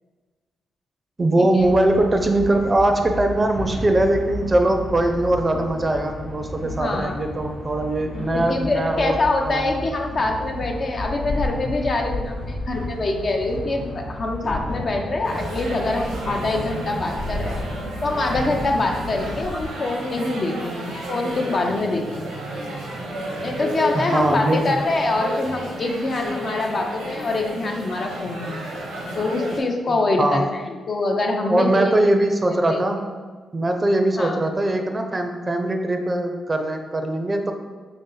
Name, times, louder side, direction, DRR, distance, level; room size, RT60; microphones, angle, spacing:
voice 1, 1.2-9.2 9.5-9.7 23.9-24.8 29.9-30.5 31.5-33.0 33.5-37.5, right 1 dB, 30° right, 5 dB, 0.4 m, -21 dB
sound 1, 1.6-19.7, left 1 dB, 65° left, 0.9 m, -32 dB
voice 2, 6.8-7.2 8.3-17.6 18.0-22.3 23.4-28.6 29.2-31.9 32.5-32.8 34.2-34.4, left 2 dB, 50° left, 2 dB, 0.5 m, -24 dB
sound 2, 15.2-29.6, right 1 dB, 85° right, 0.7 m, -32 dB
3.2 x 2.7 x 3.8 m, 1.4 s
hypercardioid pair, 45°, 0 cm